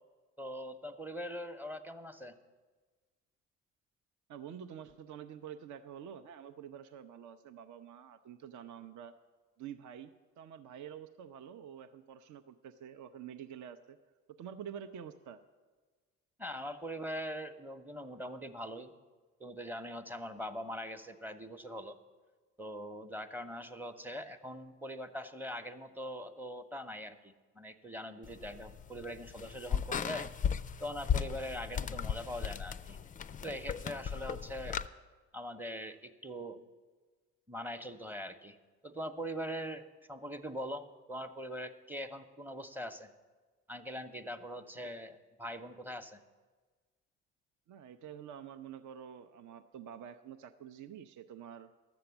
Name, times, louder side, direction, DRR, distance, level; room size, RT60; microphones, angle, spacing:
voice 1, 0.4-2.4 16.4-18.9 19.4-22.0 22.6-30.3 30.8-33.0 33.4-34.8 35.3-36.6 37.5-38.6 38.8-43.1 43.7-46.2, equal, 5° right, 9 dB, 0.9 m, -42 dB
voice 2, 4.3-9.1 9.6-14.0 14.4-15.4 47.7-51.7, right 8 dB, 50° right, 9 dB, 0.7 m, -48 dB
sound 1, 28.2-34.9, left 8 dB, 20° left, 0.4 m, -36 dB
11.5 x 7.6 x 7.1 m, 1.4 s
hypercardioid pair, 50°, 39 cm